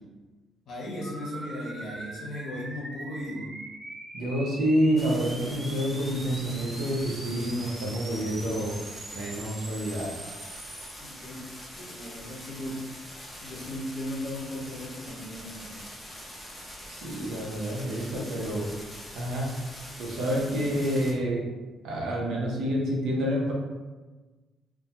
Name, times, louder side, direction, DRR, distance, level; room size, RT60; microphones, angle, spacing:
voice 1, 0.7-3.5 11.0-11.4 11.7-12.8 13.4-15.8, left 1 dB, 65° left, -3 dB, 0.7 m, -37 dB
sound 1, 1.0-10.9, right 2 dB, 40° right, 0.5 m, -42 dB
voice 2, 4.1-8.7 9.1-10.1 16.9-18.6 19.1-19.5 20.0-21.5 21.8-23.5, equal, 80° right, -3 dB, 0.7 m, -28 dB
sound 2, 5.0-21.1, equal, 10° left, 0.7 m, -44 dB
2.2 x 2.2 x 2.8 m, 1.2 s
supercardioid pair, 75°, 0 cm